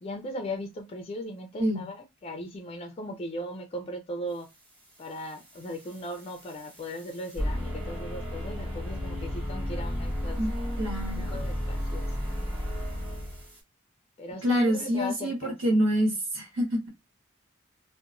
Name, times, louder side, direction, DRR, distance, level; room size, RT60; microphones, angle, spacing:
voice 1, 0.0-4.5 5.0-10.4 11.2-12.2 14.2-15.8, left 1 dB, 30° left, 0.3 m, -38 dB
sound 1, 5.0-13.6, equal, 25° right, 1.3 m, -34 dB
voice 2, 10.8-11.5 14.4-16.9, equal, 85° right, 1.3 m, -27 dB
2.8 x 2.1 x 2.4 m
head